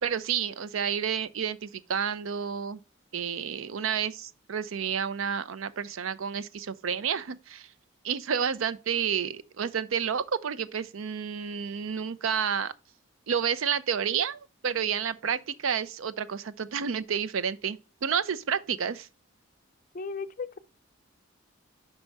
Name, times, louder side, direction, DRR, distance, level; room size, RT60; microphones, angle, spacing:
voice 1, 0.0-2.8 3.1-7.7 8.0-12.7 13.3-19.1, right 7 dB, 75° right, 0.5 m, -30 dB
voice 2, 19.9-20.6, left 4 dB, 40° left, 0.4 m, -35 dB
5.4 x 4.6 x 5.3 m
head